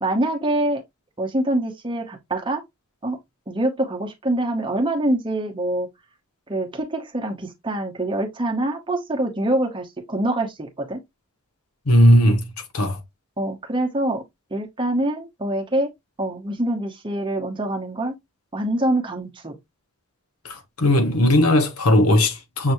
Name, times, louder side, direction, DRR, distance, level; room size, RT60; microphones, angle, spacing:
voice 1, 0.0-0.8 1.2-2.6 3.0-3.2 3.5-5.9 6.5-11.0 13.4-14.2 14.5-15.9 16.2-18.1 18.5-19.6, right 1 dB, 25° right, 0.9 m, -25 dB
voice 2, 11.9-13.0 20.4-22.7, left 1 dB, 90° left, 1.2 m, -17 dB
6.5 x 3.1 x 2.6 m
head